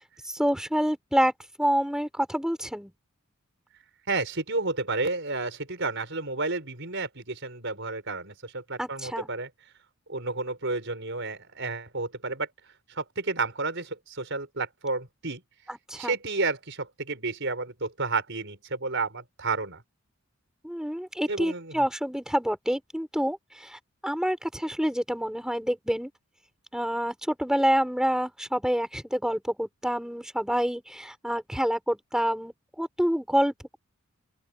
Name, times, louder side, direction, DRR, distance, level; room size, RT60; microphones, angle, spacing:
voice 1, 0.3-1.3 1.6-2.9 8.8-9.3 15.7-16.1 20.6-26.1 26.7-33.8, equal, 5° right, 6.6 m, -27 dB
voice 2, 4.1-9.5 10.1-12.5 12.9-15.4 15.9-19.8 21.3-21.7, right 3 dB, 55° right, 5.6 m, -31 dB
open air
head